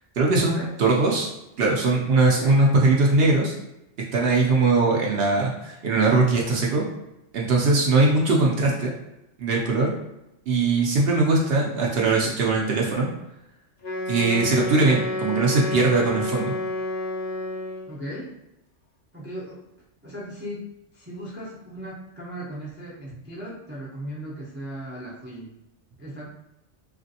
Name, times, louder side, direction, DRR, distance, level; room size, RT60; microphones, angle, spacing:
voice 1, 0.2-1.3 1.6-3.5 4.1-6.8 7.3-8.9 9.4-9.9 10.5-13.1 14.1-16.5, right 3 dB, 65° right, -2 dB, 0.7 m, -21 dB
voice 2, 11.8-12.4 17.9-18.3 19.1-19.6 20.0-25.5 26.0-26.3, equal, 15° right, -6 dB, 0.4 m, -37 dB
Wind instrument woodwind instrument, 13.8-18.0, left 1 dB, 55° left, 0.7 m, -29 dB
3.2 x 2.5 x 2.7 m, 0.89 s
omnidirectional pair, 1.3 m